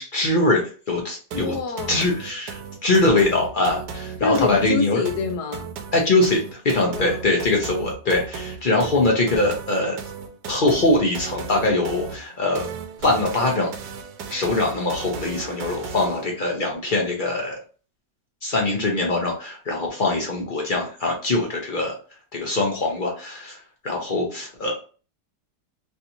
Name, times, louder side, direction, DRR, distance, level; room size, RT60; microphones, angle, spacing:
voice 1, 0.0-1.5 1.9-5.0 5.9-10.0 10.5-12.7 13.0-13.7 14.3-17.6 18.4-22.0 22.3-23.6 23.8-24.8, left 2 dB, 50° left, 0.6 m, -22 dB
voice 2, 1.3-2.1 4.2-5.7 6.7-7.4, left 4 dB, 80° left, 1.2 m, -27 dB
sound 1, 1.3-16.3, right 6 dB, 85° right, 1.2 m, -35 dB
3.3 x 2.8 x 2.7 m
omnidirectional pair, 1.8 m